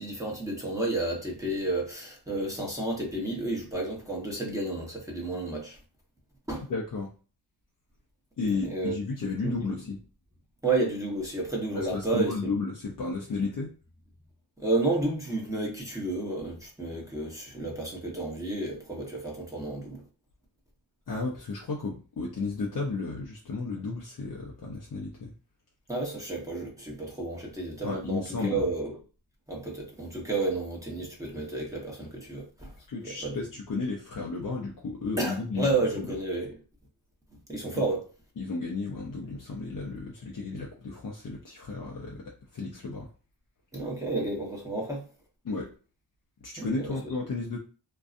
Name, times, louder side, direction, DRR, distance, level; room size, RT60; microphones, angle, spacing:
voice 1, 0.0-5.8 6.5-6.7 8.6-9.0 9.4-9.7 10.6-12.6 14.6-20.0 25.9-29.0 29.5-32.7 33.0-33.4 35.2-36.6 37.5-38.0 43.7-45.0 46.6-47.0, right 2 dB, 10° right, 0.9 m, -31 dB
voice 2, 6.7-7.1 8.4-10.0 11.7-13.7 21.1-25.3 27.8-28.6 32.9-36.1 38.4-43.1 45.4-45.7 46.4-47.6, left 3 dB, 50° left, 0.5 m, -33 dB
2.6 x 2.2 x 2.4 m
wide cardioid pair, 70°, 43 cm